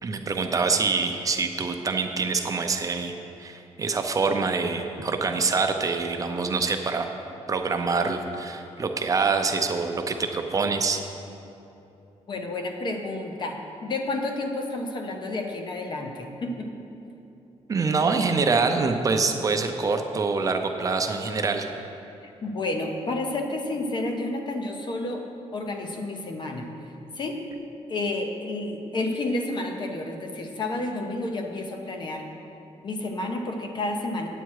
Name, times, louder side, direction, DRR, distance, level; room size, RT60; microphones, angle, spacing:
voice 1, 0.0-3.1 3.4-7.1 7.5-11.0 17.7-21.7, right 4 dB, 30° right, 5 dB, 0.6 m, -25 dB
voice 2, 12.3-16.7 22.2-25.3 25.5-26.7 27.2-27.4 27.9-32.2 32.8-34.3, left 2 dB, 40° left, 3 dB, 0.8 m, -30 dB
9.0 x 8.4 x 4.7 m, 2.9 s
wide cardioid pair, 170°, 12 cm